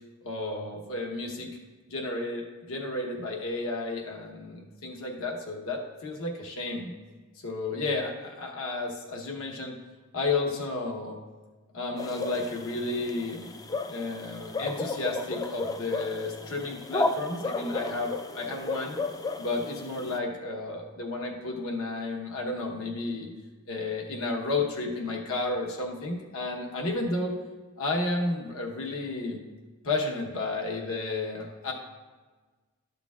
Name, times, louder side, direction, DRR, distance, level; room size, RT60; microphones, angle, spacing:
voice 1, 0.2-1.5 1.9-6.9 7.4-9.8 10.1-11.2 11.7-13.5 13.9-19.0 19.4-23.3 23.7-27.3 27.8-29.4 29.8-31.7, left 2 dB, 65° left, 1 dB, 1.0 m, -32 dB
sound 1, 12.0-20.2, left 3 dB, 15° left, 0.3 m, -34 dB
12.0 x 6.7 x 2.4 m, 1.3 s
head